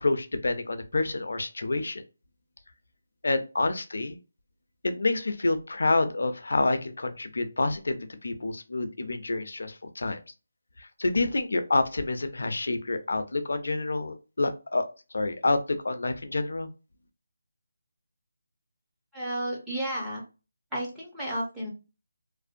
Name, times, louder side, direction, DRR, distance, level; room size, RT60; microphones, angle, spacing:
voice 1, 0.0-2.0 3.2-4.2 4.8-10.2 10.8-14.9 15.1-16.7, left 2 dB, 70° left, 9 dB, 0.5 m, -28 dB
voice 2, 19.1-20.2 20.7-21.7, right 1 dB, 5° right, -6 dB, 0.6 m, -32 dB
2.5 x 2.1 x 2.5 m, 0.31 s
figure-of-eight pair, 165°, 0 cm